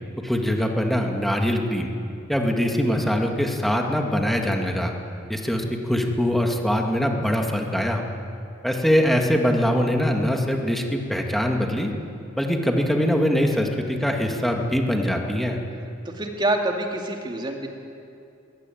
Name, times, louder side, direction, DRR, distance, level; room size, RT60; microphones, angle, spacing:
voice 1, 0.2-1.9 2.3-4.9 5.3-8.0 8.6-11.9 12.4-15.6, equal, ahead, 2 dB, 2.0 m, -23 dB
voice 2, 16.2-17.7, right 2 dB, 25° right, 2 dB, 2.5 m, -26 dB
21.5 x 17.0 x 9.3 m, 2.6 s
head